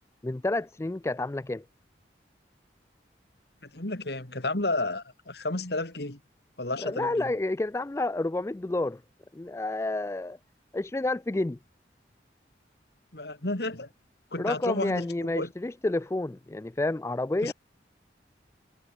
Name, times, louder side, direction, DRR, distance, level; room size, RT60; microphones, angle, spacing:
voice 1, 0.2-1.6 6.8-9.0 9.3-10.4 10.7-11.6 14.4-17.5, left 2 dB, 15° left, 0.3 m, -29 dB
voice 2, 3.6-6.2 6.6-7.3 13.1-13.9 14.3-15.5 17.4-17.5, left 2 dB, 65° left, 2.5 m, -32 dB
head